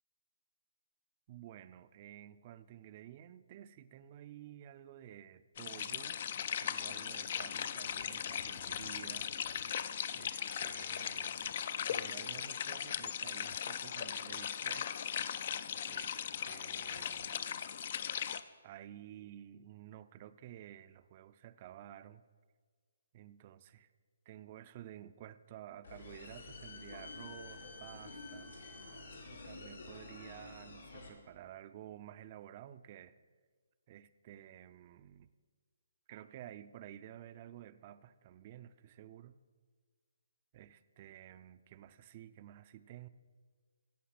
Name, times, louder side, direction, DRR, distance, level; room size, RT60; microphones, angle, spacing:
voice 1, 1.3-6.2 6.6-9.3 10.1-14.9 15.9-17.7 18.6-22.2 23.1-23.9 24.3-28.5 29.3-33.2 33.9-35.3 36.1-39.4 40.5-43.1, right 12 dB, 35° right, 13 dB, 0.5 m, -52 dB
sound 1, 5.6-18.4, left 8 dB, 50° left, 0.5 m, -38 dB
sound 2, 25.8-31.1, left 3 dB, 80° left, 2.4 m, -49 dB
16.0 x 5.7 x 5.9 m, 1.5 s
hypercardioid pair, 145°, 0 cm